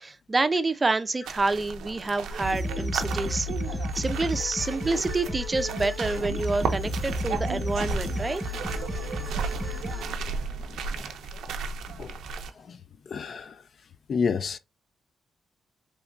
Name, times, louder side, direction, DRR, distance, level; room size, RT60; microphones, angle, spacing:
voice 1, 0.0-8.4, right 3 dB, 25° right, 0.4 m, -28 dB
sound 1, 1.2-12.5, right 5 dB, 85° right, 0.5 m, -35 dB
sound 2, 2.4-10.1, left 1 dB, 5° left, 1.0 m, -32 dB
sound 3, 6.1-11.3, left 3 dB, 80° left, 2.0 m, -50 dB
voice 2, 13.1-13.6 14.1-14.6, left 5 dB, 55° left, 0.4 m, -29 dB
3.5 x 2.9 x 2.4 m
cardioid pair, 100°, 0 cm